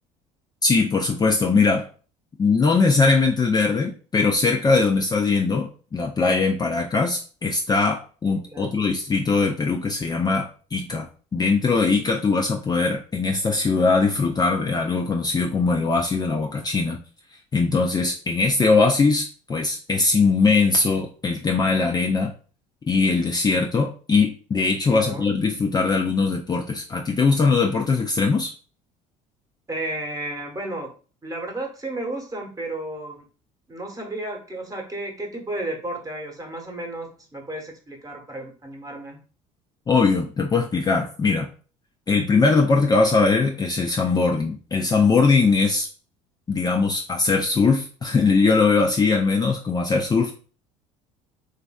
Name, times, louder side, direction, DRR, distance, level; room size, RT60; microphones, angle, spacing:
voice 1, 0.6-1.9 2.4-17.0 17.5-22.3 22.9-28.5 39.9-41.5 42.1-45.9 46.5-50.3, left 4 dB, 25° left, 1 dB, 0.5 m, -21 dB
voice 2, 8.4-8.8 24.9-25.3 29.7-30.9 31.2-33.2 33.7-39.2, right 2 dB, 20° right, 1 dB, 1.1 m, -33 dB
3.2 x 2.5 x 2.3 m, 0.38 s
hypercardioid pair, 70°, 16 cm